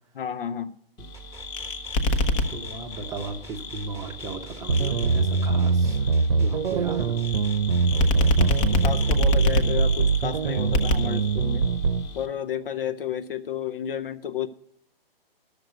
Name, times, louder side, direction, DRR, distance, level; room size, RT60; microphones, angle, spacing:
voice 1, 0.1-0.8 8.8-11.6 12.1-14.5, left 9 dB, 65° left, 0.7 m, -31 dB
sound 1, 1.0-12.3, left 2 dB, 25° left, 0.8 m, -29 dB
sound 2, 1.1-9.1, right 1 dB, 10° left, 1.3 m, -47 dB
voice 2, 2.5-7.2, right 4 dB, 10° right, 0.7 m, -37 dB
sound 3, 4.7-12.1, right 4 dB, 65° right, 0.8 m, -23 dB
11.5 x 6.7 x 7.9 m
hypercardioid pair, 140°, 30 cm